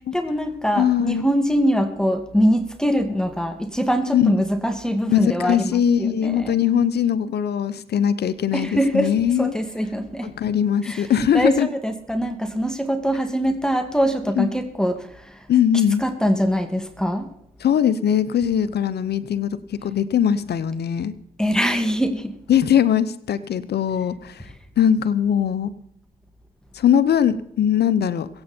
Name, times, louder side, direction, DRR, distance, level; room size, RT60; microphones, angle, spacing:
voice 1, 0.1-6.6 8.5-10.3 10.8-15.5 16.0-17.3 21.4-22.4, equal, 5° left, 7 dB, 2.3 m, -23 dB
voice 2, 0.8-1.3 4.1-4.3 5.1-9.5 10.2-11.7 14.4-14.5 15.5-16.0 17.6-21.1 22.5-24.5 24.8-25.7 26.7-28.3, left 9 dB, 75° left, 15 dB, 0.9 m, -20 dB
22.0 x 8.9 x 4.5 m, 0.72 s
supercardioid pair, 45°, 17 cm